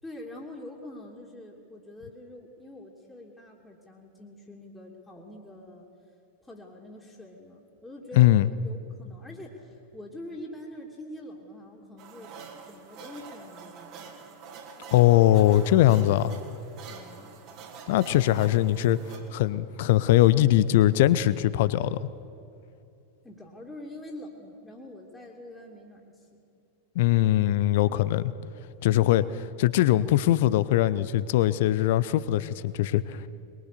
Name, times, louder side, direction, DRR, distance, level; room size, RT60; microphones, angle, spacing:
voice 1, 0.0-5.9 6.4-12.4 12.7-14.2 16.9-17.3 23.2-26.4, left 1 dB, 10° left, -5 dB, 2.8 m, -45 dB
voice 2, 8.1-8.5 14.9-16.3 17.9-19.0 19.3-22.0 26.9-28.3 28.8-33.2, left 14 dB, 50° left, 16 dB, 0.8 m, -21 dB
sound 1, 12.0-21.1, right 5 dB, 40° right, 3.0 m, -47 dB
22.5 x 22.0 x 6.8 m, 2.8 s
figure-of-eight pair, 90°, 0 cm